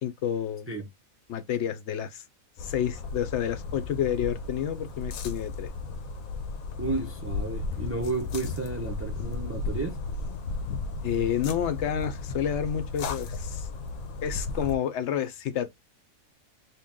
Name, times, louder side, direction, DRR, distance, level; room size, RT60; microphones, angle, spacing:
voice 1, 0.0-0.7 1.3-2.2 2.6-5.7 11.0-13.7 14.2-15.7, left 9 dB, 65° left, 0.8 m, -29 dB
sound 1, 2.6-14.7, left 3 dB, 85° left, 1.1 m, -35 dB
voice 2, 6.8-10.0, right 3 dB, 15° right, 0.4 m, -32 dB
3.0 x 2.8 x 3.5 m
omnidirectional pair, 1.4 m